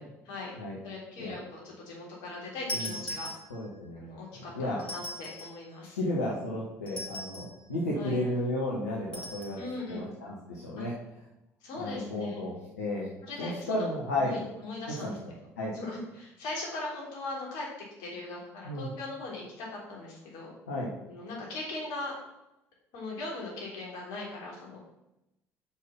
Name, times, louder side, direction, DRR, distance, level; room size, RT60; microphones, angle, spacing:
voice 1, 0.8-3.3 3.9-6.0 7.9-8.2 9.6-10.0 10.8-10.9 11.6-12.4 13.2-13.9 14.2-15.2 15.7-17.7 18.0-20.5 21.1-22.1 22.9-24.8, left 2 dB, 65° left, -3 dB, 3.4 m, -39 dB
sound 1, 2.7-3.8 4.8-5.6 6.9-7.6 9.1-9.6, left 1 dB, 15° left, 3.5 m, -39 dB
voice 2, 3.5-4.0 4.5-4.8 5.9-9.6 9.9-10.9 11.8-13.1 13.4-14.4 14.9-15.1 15.6-15.7 18.6-18.9 20.7-20.9, left 1 dB, 90° left, -5 dB, 1.5 m, -33 dB
6.3 x 5.8 x 7.2 m, 0.90 s
hypercardioid pair, 55°, 8 cm